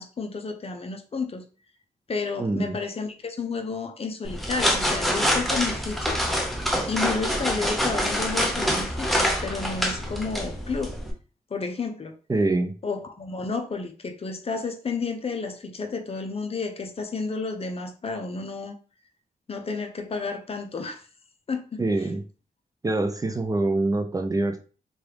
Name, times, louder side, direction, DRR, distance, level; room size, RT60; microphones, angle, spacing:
voice 1, 0.0-1.4 2.1-6.2 6.9-10.9 11.5-12.1 12.8-18.8 19.5-21.1 21.5-21.8, left 4 dB, 40° left, 6 dB, 0.6 m, -31 dB
voice 2, 2.4-2.8 12.3-12.8 21.8-22.2 22.8-24.6, right 2 dB, 25° right, 6 dB, 0.4 m, -25 dB
sound 1, 4.2-11.1, equal, ahead, 0.8 m, -26 dB
3.0 x 2.4 x 3.3 m, 0.37 s
cardioid pair, 70°, 15 cm